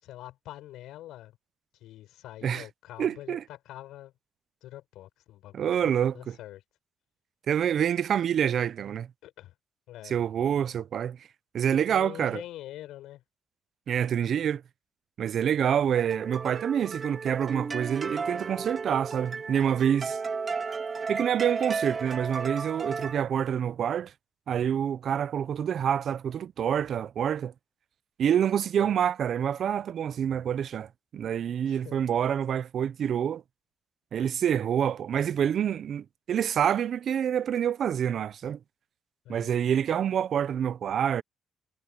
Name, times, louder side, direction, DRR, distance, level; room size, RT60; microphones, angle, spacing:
voice 1, 0.0-1.4 1.8-4.1 4.6-6.6 9.2-9.5 9.9-10.2 11.7-13.2 28.8-28.9 31.7-32.0 39.2-39.5, left 14 dB, 90° left, 6.5 m, -45 dB
voice 2, 3.0-3.4 5.5-6.4 7.5-9.1 10.0-11.2 11.5-12.4 13.9-14.6 15.2-20.2 21.1-24.1 24.5-27.5 28.2-33.4 34.1-38.6 39.3-41.2, right 9 dB, 60° right, 0.6 m, -27 dB
sound 1, 15.9-23.2, right 5 dB, 40° right, 3.1 m, -34 dB
cardioid pair, 90°, 0 cm